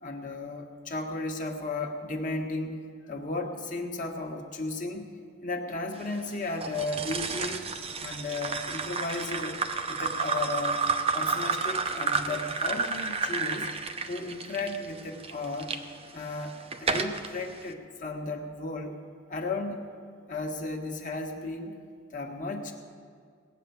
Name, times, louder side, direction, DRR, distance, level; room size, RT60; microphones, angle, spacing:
voice 1, 0.0-2.8 3.1-5.0 5.4-7.7 8.0-9.6 9.9-10.8 11.1-13.7 14.1-15.8 16.1-19.0 19.3-19.8 20.3-21.7 22.1-22.7, left 2 dB, 40° left, 2 dB, 1.4 m, -34 dB
sound 1, 6.6-15.8 16.3-17.3, right 4 dB, 30° right, 0.7 m, -31 dB
17.5 x 9.1 x 6.9 m, 2.1 s
head